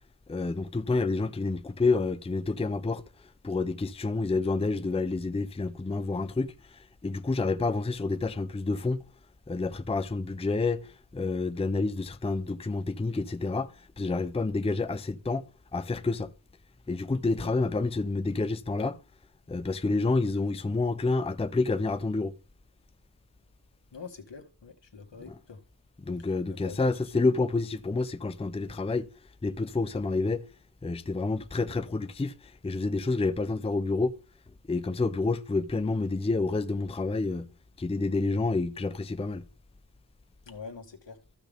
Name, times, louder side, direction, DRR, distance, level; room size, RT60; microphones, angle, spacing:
voice 1, 0.3-3.0 3.4-9.0 9.5-15.4 15.7-16.3 16.9-19.0 19.5-22.3 25.3-25.4 26.0-29.1 29.4-30.4 30.8-34.1 34.7-37.5 37.8-39.4, left 3 dB, 15° left, 0.5 m, -29 dB
voice 2, 23.9-25.6 26.6-27.0 40.4-41.2, left 5 dB, 80° left, 1.7 m, -44 dB
14.5 x 5.9 x 3.5 m
wide cardioid pair, 70°, 43 cm